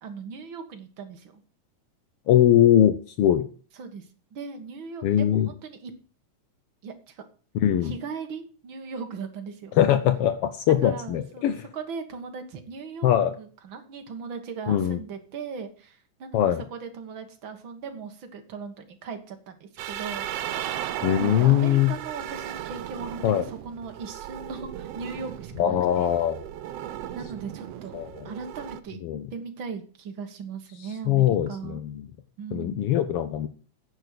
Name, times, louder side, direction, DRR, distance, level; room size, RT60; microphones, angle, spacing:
voice 1, 0.0-1.4 3.8-5.9 6.8-7.2 7.8-9.8 10.7-11.5 11.7-13.1 13.4-20.3 21.2-26.2 27.1-28.0 28.2-29.0 29.3-31.8 32.4-32.9, right 5 dB, 50° right, 6 dB, 1.8 m, -38 dB
voice 2, 2.3-3.5 5.0-5.5 7.5-7.9 9.7-11.6 13.0-13.3 14.7-15.0 16.3-16.6 21.0-21.9 23.2-23.4 25.6-26.4 27.9-28.3 29.0-29.3 31.1-32.1 32.5-33.5, left 11 dB, 85° left, 11 dB, 1.3 m, -21 dB
sound 1, 19.8-28.8, right 11 dB, 75° right, 1.5 m, -36 dB
9.9 x 8.2 x 6.6 m, 0.40 s
omnidirectional pair, 3.6 m